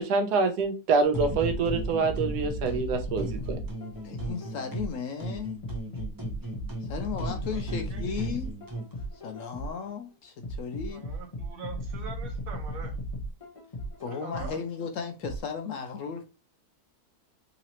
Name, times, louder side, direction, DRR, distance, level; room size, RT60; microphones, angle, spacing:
voice 1, 0.0-3.6, right 4 dB, 90° right, 1.3 m, -26 dB
sound 1, 1.1-5.1 5.6-9.9 10.4-14.7 15.2-15.4, right 1 dB, 25° left, 1.2 m, -36 dB
sound 2, 1.1-2.8 3.2-4.9 5.2-8.9, right 2 dB, 20° right, 0.6 m, -37 dB
voice 2, 4.0-5.6 6.8-8.5 9.1-11.0 14.0-16.2, left 6 dB, 70° left, 0.8 m, -35 dB
voice 3, 7.5-8.3 10.9-12.9 14.1-14.6, right 4 dB, 65° right, 1.4 m, -43 dB
3.8 x 2.9 x 2.9 m
omnidirectional pair, 1.7 m